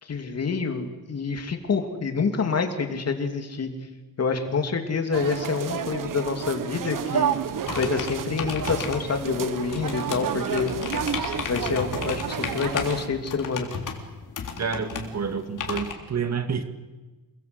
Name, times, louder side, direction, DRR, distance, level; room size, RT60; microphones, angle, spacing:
voice 1, 0.0-3.7 4.2-7.4 7.8-10.7 11.5-13.7, left 5 dB, 45° left, 5 dB, 3.1 m, -27 dB
sound 1, 5.1-13.1, right 8 dB, 65° right, 1.5 m, -30 dB
sound 2, 7.6-15.9, left 6 dB, 60° left, 3.7 m, -34 dB
voice 2, 14.6-16.6, right 6 dB, 50° right, 8 dB, 2.2 m, -29 dB
28.0 x 22.0 x 8.1 m, 1.2 s
wide cardioid pair, 140°, 35 cm